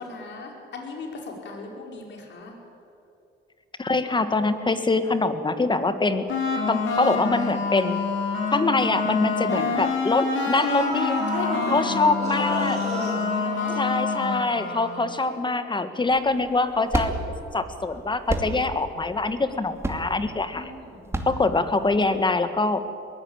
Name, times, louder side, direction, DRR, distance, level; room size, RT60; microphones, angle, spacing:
voice 1, 0.0-2.6 9.5-9.8 11.3-12.1 12.4-13.9 16.3-16.4 20.5-21.1, left 3 dB, 65° left, 1 dB, 4.7 m, -36 dB
voice 2, 3.8-6.3 6.7-8.0 8.5-11.2 11.7-12.8 13.8-17.2 17.5-20.7 21.3-22.8, left 3 dB, 25° left, 10 dB, 1.6 m, -24 dB
sound 1, 6.3-15.1, left 4 dB, 80° left, 4.1 m, -27 dB
sound 2, 8.4-8.5 8.8-9.0 10.0-10.1 10.5-14.5 14.8-14.9, right 2 dB, 35° right, 5.5 m, -34 dB
sound 3, 16.1-22.3, right 1 dB, 15° right, 2.5 m, -31 dB
21.5 x 16.5 x 8.9 m, 2.7 s
cardioid pair, 90°, 20 cm